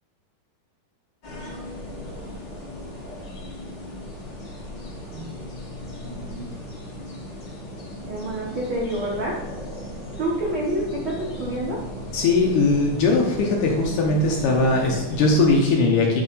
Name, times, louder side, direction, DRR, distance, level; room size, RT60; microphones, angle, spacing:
sound 1, 1.2-15.6, left 1 dB, 35° left, 2.0 m, -36 dB
voice 1, 6.0-6.5 8.0-9.3 10.2-11.9, right 1 dB, 80° right, -5 dB, 1.1 m, -28 dB
voice 2, 12.1-16.2, left 3 dB, 70° left, 0 dB, 2.0 m, -20 dB
11.0 x 3.7 x 5.3 m, 1.1 s
omnidirectional pair, 4.5 m